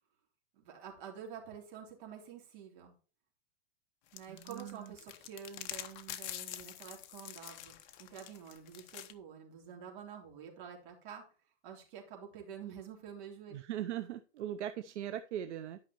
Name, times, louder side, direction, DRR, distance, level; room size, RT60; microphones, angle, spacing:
voice 1, 0.6-2.9 4.1-11.2 11.6-13.5, right 8 dB, 45° right, 1 dB, 3.4 m, -48 dB
sound 1, 4.1-9.1, left 12 dB, 40° left, 0.9 m, -46 dB
voice 2, 4.3-4.9 13.5-15.8, right 11 dB, 75° right, 10 dB, 0.8 m, -40 dB
11.5 x 5.7 x 3.0 m, 0.37 s
supercardioid pair, 155°, 35 cm